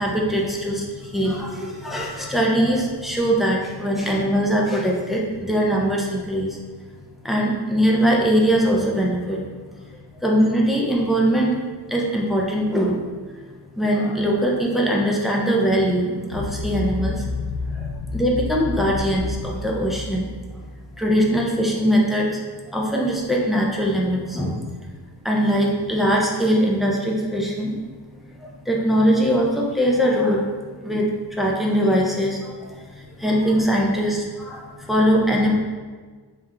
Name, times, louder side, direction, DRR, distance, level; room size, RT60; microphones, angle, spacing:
voice 1, 0.0-6.6 7.2-9.4 9.9-11.6 11.9-13.1 13.7-17.3 17.7-20.6 21.0-22.4 22.7-24.6 25.2-27.8 28.4-35.5, equal, ahead, -2 dB, 0.4 m, -21 dB
sound 1, 16.3-21.0, left 3 dB, 85° left, 0.6 m, -30 dB
3.7 x 2.4 x 4.2 m, 1.4 s
wide cardioid pair, 155°, 41 cm